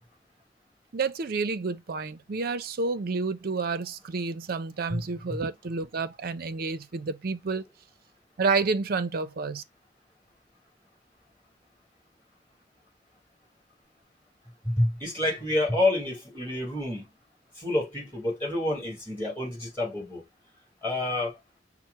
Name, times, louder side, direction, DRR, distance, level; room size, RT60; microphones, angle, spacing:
voice 1, 0.9-7.6 8.4-9.6, right 4 dB, 50° right, 0.5 m, -29 dB
voice 2, 14.6-17.1 17.6-20.2 20.8-21.4, left 1 dB, 10° left, 3.3 m, -28 dB
5.6 x 2.0 x 4.1 m
head